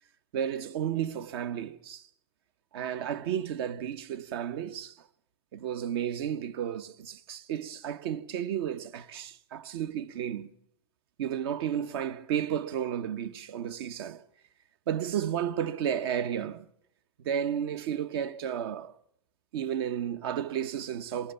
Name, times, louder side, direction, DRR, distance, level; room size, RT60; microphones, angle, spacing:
voice 1, 0.3-2.0 2.7-4.9 5.5-10.5 11.2-14.2 14.9-16.7 17.2-18.9 19.5-21.3, right 9 dB, 70° right, 1.0 m, -32 dB
23.0 x 22.0 x 6.9 m
supercardioid pair, 120°, 13 cm